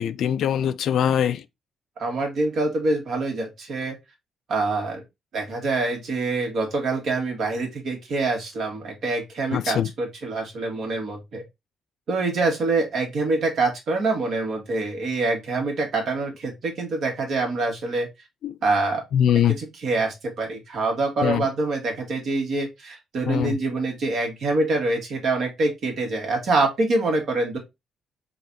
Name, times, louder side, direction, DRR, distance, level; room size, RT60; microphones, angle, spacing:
voice 1, 0.0-1.4 9.5-9.9 18.4-18.6 19.1-19.6 21.2-21.4 23.3-23.6, left 9 dB, 70° left, 0.3 m, -22 dB
voice 2, 2.0-4.0 4.5-5.0 5.3-11.4 12.1-18.1 18.6-19.0 19.3-27.6, right 3 dB, 65° right, 1.7 m, -25 dB
3.9 x 2.5 x 4.0 m
cardioid pair, 90°, 0 cm